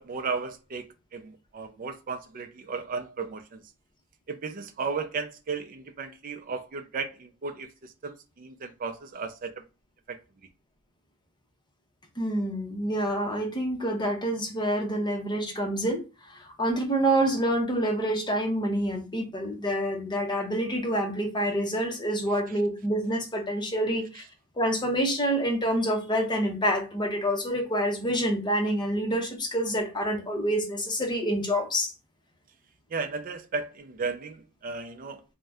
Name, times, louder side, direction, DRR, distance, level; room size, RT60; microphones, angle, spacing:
voice 1, 0.0-3.6 4.3-9.7 10.1-10.2 32.9-35.2, right 4 dB, 40° right, 0.4 m, -35 dB
voice 2, 12.2-24.2 24.6-31.9, right 1 dB, 20° left, 0.7 m, -27 dB
2.6 x 2.1 x 3.4 m
head